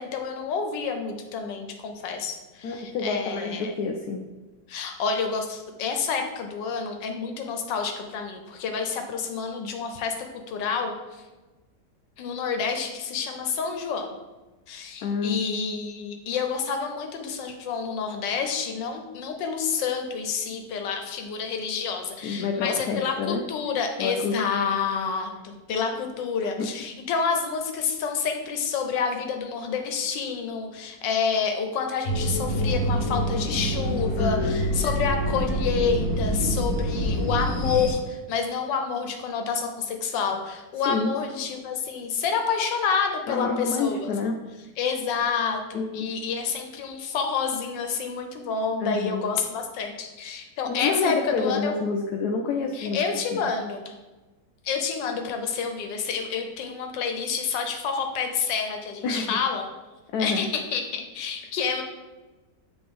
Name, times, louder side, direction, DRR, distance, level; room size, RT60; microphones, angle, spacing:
voice 1, 0.0-3.7 4.7-11.2 12.2-14.2 14.7-44.1 44.8-51.7 52.7-53.9 54.6-59.7 60.2-61.8, left 6 dB, 85° left, 5 dB, 1.4 m, -29 dB
voice 2, 2.6-4.3 15.0-15.4 22.2-23.4 24.0-24.6 26.4-26.7 34.2-34.6 40.9-41.1 43.3-44.4 45.7-46.1 48.8-49.2 50.7-53.0 53.3-53.5 59.0-59.4 60.1-60.5, left 4 dB, 70° left, 3 dB, 1.0 m, -28 dB
sound 1, 32.0-37.9, equal, 50° left, 1.4 m, -26 dB
7.9 x 3.3 x 3.6 m, 1.1 s
omnidirectional pair, 1.9 m